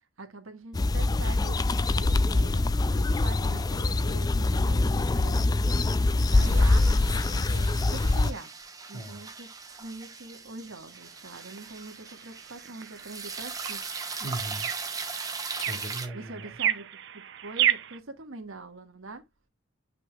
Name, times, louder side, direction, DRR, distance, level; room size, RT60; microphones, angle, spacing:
voice 1, 0.2-1.6 2.0-8.5 8.9-9.5 9.8-13.9 16.1-16.9 17.1-19.2, right 3 dB, 80° right, 1.6 m, -43 dB
sound 1, 0.7-8.3, left 2 dB, 20° left, 0.3 m, -24 dB
sound 2, 6.2-16.1, right 4 dB, 20° right, 1.1 m, -39 dB
voice 2, 8.9-9.3 10.5-10.6 14.2-14.7 15.6-16.6, right 1 dB, 35° left, 4.8 m, -38 dB
sound 3, 10.9-18.0, right 10 dB, 60° right, 0.7 m, -33 dB
8.1 x 5.9 x 2.3 m
head